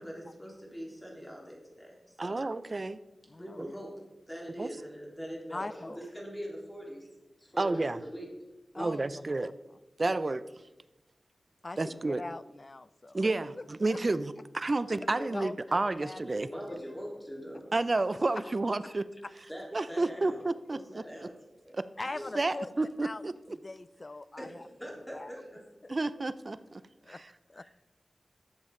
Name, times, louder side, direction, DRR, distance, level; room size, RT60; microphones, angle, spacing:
voice 1, 0.0-1.9 2.2-2.4 3.4-3.9 4.3-7.1 7.5-8.3 8.7-9.2 11.8-12.0 16.2-17.6 19.5-20.4 20.7-21.3 21.6-21.7 22.1-22.3 24.4-24.5 24.8-25.6 27.6-27.7, equal, 10° left, -3 dB, 3.6 m, -42 dB
voice 2, 2.2-3.0 4.6-4.7 7.6-8.0 8.8-9.5 10.0-10.4 11.8-12.2 13.1-16.5 17.7-19.1 19.7-21.0 21.7-21.9 22.3-23.3 25.9-26.8 27.1-27.3, right 2 dB, 45° right, 15 dB, 0.5 m, -30 dB
voice 3, 3.3-3.6 5.5-6.1 8.7-9.5 10.0-10.2 11.6-13.2 13.9-14.0 15.2-16.2 16.7-16.9 18.4-18.5 18.8-18.9 19.2-19.3 22.0-22.7 23.0-23.2 23.6-24.7 25.1-25.3 25.8-26.0 27.0-27.2 27.5-27.6, left 2 dB, 40° left, 16 dB, 0.3 m, -42 dB
12.0 x 7.1 x 3.8 m, 1.0 s
cardioid pair, 45°, 0 cm